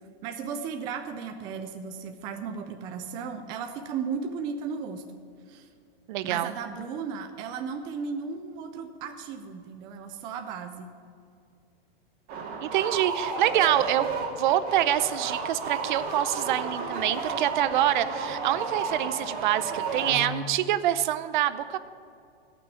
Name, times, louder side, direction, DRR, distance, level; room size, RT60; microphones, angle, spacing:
voice 1, 0.2-5.2 5.5-5.7 6.2-10.9, right 6 dB, 15° right, 5 dB, 0.3 m, -35 dB
voice 2, 6.1-6.5 12.6-14.1 14.4-21.8, right 12 dB, 50° right, 13 dB, 0.7 m, -26 dB
sound 1, 12.3-20.6, right 4 dB, 30° right, 2.3 m, -32 dB
17.0 x 6.1 x 8.9 m, 2.3 s
hypercardioid pair, 150°, 31 cm